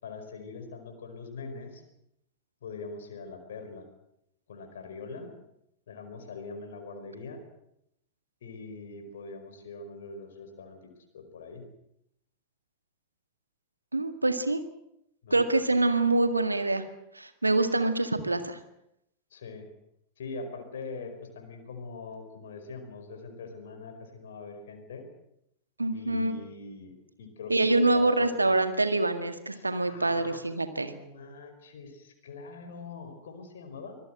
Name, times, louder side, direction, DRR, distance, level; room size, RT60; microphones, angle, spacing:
voice 1, 0.0-1.8 2.6-3.9 4.5-5.3 5.9-7.4 8.4-11.7 15.2-15.5 19.3-19.7 20.2-25.0 25.9-28.5 29.5-30.4 30.7-34.0, left 4 dB, 60° left, 5 dB, 5.1 m, -43 dB
voice 2, 13.9-14.6 15.3-16.8 17.1-18.6 25.8-26.3 27.5-30.9, right 2 dB, 80° right, 9 dB, 1.9 m, -25 dB
25.0 x 19.0 x 7.8 m, 0.79 s
figure-of-eight pair, 90°, 0 cm